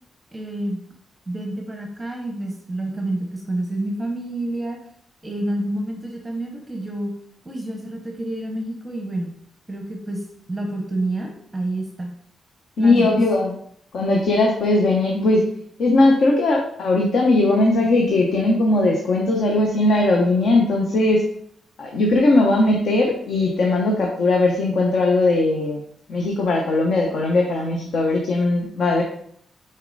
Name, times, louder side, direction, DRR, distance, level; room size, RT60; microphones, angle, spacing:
voice 1, 0.3-0.8 1.3-4.8 5.2-7.1 7.4-9.3 9.7-12.1 12.8-13.2, right 1 dB, 10° right, 2 dB, 0.8 m, -28 dB
voice 2, 12.8-13.6 13.9-15.5 15.8-21.2 21.8-25.8 26.1-29.0, left 2 dB, 65° left, 0 dB, 0.9 m, -19 dB
6.6 x 4.4 x 3.9 m, 0.67 s
wide cardioid pair, 155°, 0 cm